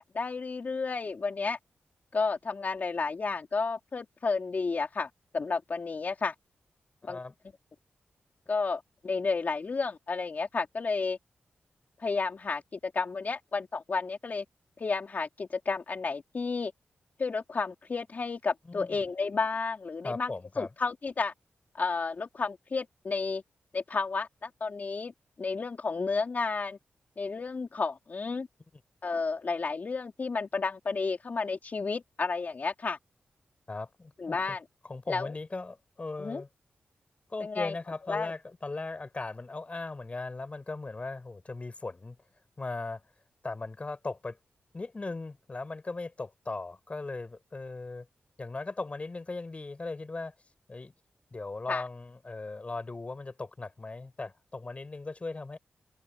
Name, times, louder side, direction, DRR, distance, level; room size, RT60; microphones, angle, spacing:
voice 1, 0.0-1.6 2.1-6.3 7.1-7.2 8.5-11.2 12.0-14.4 14.8-16.7 17.2-20.3 20.6-21.3 21.7-23.4 23.7-25.1 25.4-26.8 27.2-28.5 29.0-33.0 34.2-34.6 35.1-35.3 36.2-36.4 37.4-37.7 38.1-38.3 51.7-51.8, left 4 dB, 50° left, 3.0 m, -32 dB
voice 2, 7.0-7.3 18.7-19.0 20.0-20.7 33.7-34.6 34.9-36.5 37.3-42.2 42.6-43.0 43.4-44.4 44.7-48.1 48.4-50.3 50.7-50.9 51.3-55.6, left 3 dB, 35° left, 7.4 m, -38 dB
cardioid pair, 70°, 4 cm